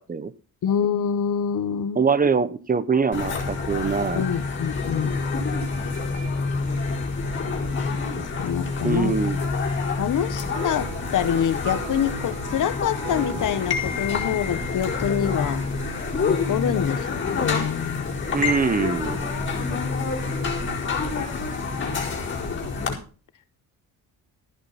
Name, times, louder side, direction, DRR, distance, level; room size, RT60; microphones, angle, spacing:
voice 1, 0.6-2.1 4.1-5.1 8.4-9.2 9.9-15.6 16.3-18.1, left 9 dB, 65° left, 1.2 m, -26 dB
voice 2, 1.9-4.2 8.8-9.4 18.3-19.3, right 5 dB, 25° right, 0.8 m, -23 dB
sound 1, 3.1-22.9, left 4 dB, 35° left, 4.7 m, -27 dB
sound 2, 10.5-16.0, right 6 dB, 75° right, 6.5 m, -41 dB
14.5 x 10.5 x 4.2 m
cardioid pair, 150°, 34 cm